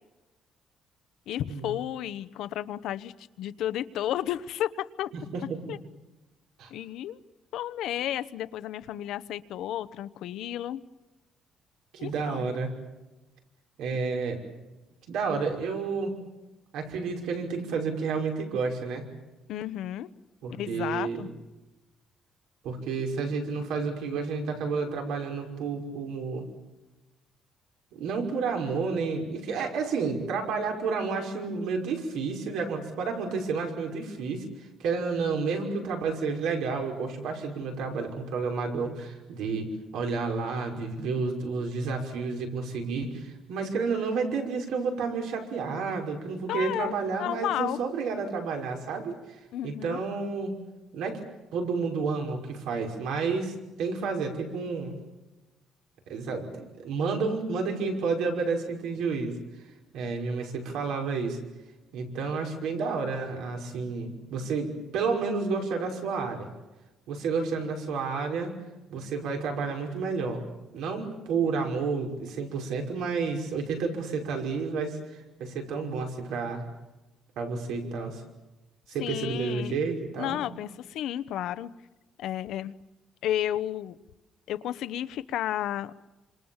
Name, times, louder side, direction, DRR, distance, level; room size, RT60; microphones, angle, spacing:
voice 1, 1.3-5.1 5.7-5.8 6.7-7.2 7.5-10.8 12.0-12.5 19.5-20.1 20.6-21.3 46.5-47.8 49.5-50.0 79.0-79.7 80.2-81.7 82.2-82.7 83.2-83.9 84.5-85.9, left 12 dB, 70° left, 13 dB, 1.0 m, -32 dB
voice 2, 5.1-5.8 6.6-6.7 11.9-12.7 13.8-14.4 15.1-16.2 16.7-19.0 20.4-21.3 22.6-26.4 27.9-34.4 34.8-50.6 50.9-51.2 51.5-54.9 56.1-59.4 59.9-61.4 61.9-66.5 67.1-68.6 68.9-70.4 70.7-76.6 77.4-78.2 78.9-80.4, right 4 dB, 90° right, 2 dB, 5.6 m, -30 dB
28.0 x 26.5 x 7.3 m, 1.1 s
cardioid pair, 175°, 0 cm